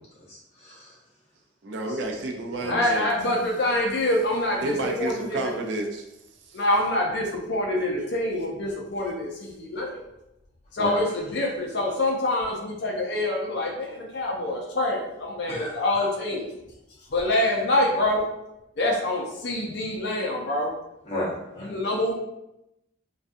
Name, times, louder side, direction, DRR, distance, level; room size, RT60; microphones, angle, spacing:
voice 1, 0.3-0.9 2.6-2.8 10.8-11.0 15.5-16.1 21.1-21.7, left 1 dB, 30° left, -7 dB, 0.9 m, -33 dB
voice 2, 1.6-3.1 4.6-6.0 6.5-6.6, right 2 dB, 60° right, 2 dB, 0.4 m, -30 dB
voice 3, 2.7-5.5 6.5-10.0 10.7-16.5 17.1-18.3 18.8-20.7 21.6-22.1, left 1 dB, 55° left, -1 dB, 0.5 m, -26 dB
2.5 x 2.2 x 2.5 m, 0.87 s
head